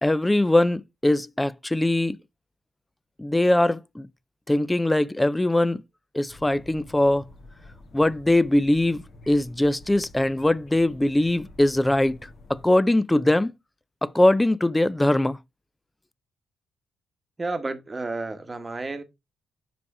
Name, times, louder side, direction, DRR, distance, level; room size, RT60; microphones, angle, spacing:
voice 1, 0.0-2.2 3.2-4.1 4.5-5.8 6.1-7.2 7.9-13.5 14.0-15.4, left 1 dB, 10° left, 0.3 m, -21 dB
sound 1, 6.3-12.7, left 2 dB, 50° left, 1.2 m, -49 dB
voice 2, 17.4-19.0, right 3 dB, 25° right, 1.0 m, -31 dB
5.0 x 4.8 x 4.7 m
cardioid pair, 90°, 0 cm